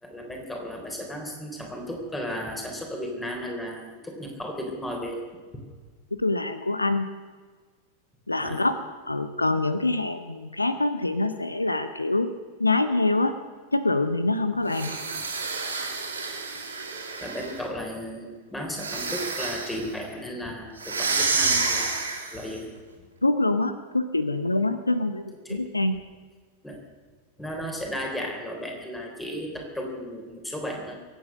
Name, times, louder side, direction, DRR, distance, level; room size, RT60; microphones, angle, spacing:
voice 1, 0.0-5.2 8.4-8.6 14.5-14.7 17.2-22.0 22.3-22.7 25.5-25.7 26.6-26.8 27.4-31.0, equal, 5° left, 1 dB, 3.6 m, -34 dB
voice 2, 6.2-7.1 8.3-12.3 12.6-13.4 13.7-14.9 23.2-25.2 25.5-26.0, left 2 dB, 85° left, 11 dB, 0.8 m, -25 dB
sound 1, 14.7-17.6 18.7-19.9 20.8-22.5, right 4 dB, 75° right, 3.1 m, -29 dB
23.0 x 9.2 x 6.5 m, 1.4 s
figure-of-eight pair, 90°, 0 cm